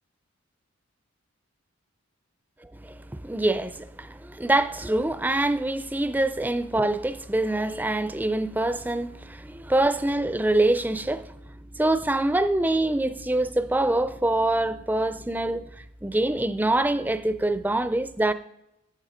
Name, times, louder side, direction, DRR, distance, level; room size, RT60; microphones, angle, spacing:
voice 1, 2.8-11.3 11.8-15.7 16.0-18.3, right 2 dB, 10° right, 0.4 m, -25 dB
13.0 x 7.5 x 5.0 m
head